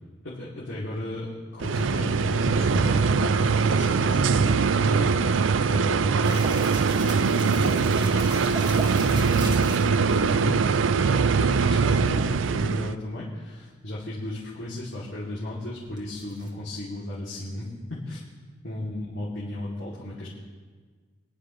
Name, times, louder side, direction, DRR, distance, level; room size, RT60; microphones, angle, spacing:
voice 1, 0.2-6.2 7.0-8.1 8.7-18.2 18.6-20.3, left 1 dB, 75° left, -8 dB, 2.7 m, -34 dB
water machine motor, 1.6-12.9, right 5 dB, 80° right, 0.5 m, -22 dB
sound 1, 6.2-10.0 16.0-16.5, right 1 dB, 20° right, 1.7 m, -37 dB
24.0 x 11.0 x 3.2 m, 1.5 s
head